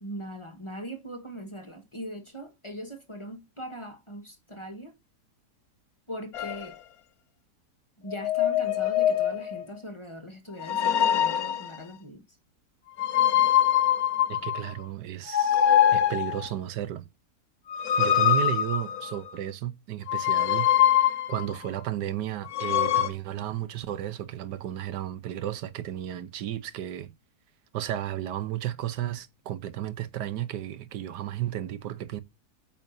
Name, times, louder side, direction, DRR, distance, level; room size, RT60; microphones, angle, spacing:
voice 1, 0.0-4.9 6.1-6.8 8.0-12.2, equal, 20° left, 1.3 m, -40 dB
sound 1, 6.3-6.7 8.1-9.6 10.6-11.8 13.0-14.7 15.3-16.5 17.7-19.3 20.1-21.5 22.5-23.1, left 10 dB, 65° left, 1.3 m, -23 dB
voice 2, 14.3-17.1 18.0-27.1 27.7-32.2, right 12 dB, 85° right, 1.4 m, -33 dB
8.7 x 5.7 x 2.6 m
omnidirectional pair, 1.8 m